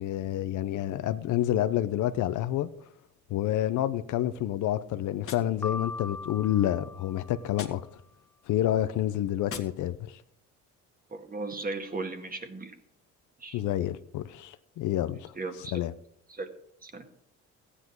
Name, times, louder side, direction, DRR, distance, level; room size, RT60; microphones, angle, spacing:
voice 1, 0.0-2.7 3.3-7.8 8.5-10.2 13.5-15.3 15.7-15.9, left 12 dB, 65° left, 0.7 m, -28 dB
Gunshot gunfire, 5.2-6.3 7.5-8.4 9.4-10.3, left 7 dB, 40° left, 1.7 m, -45 dB
Piano, 5.6-7.8, left 3 dB, 5° left, 0.5 m, -39 dB
voice 2, 11.1-12.8 13.4-13.6 15.4-15.8 16.3-16.5 16.8-17.1, right 3 dB, 25° right, 2.0 m, -36 dB
14.5 x 9.9 x 4.6 m
supercardioid pair, 75°, 32 cm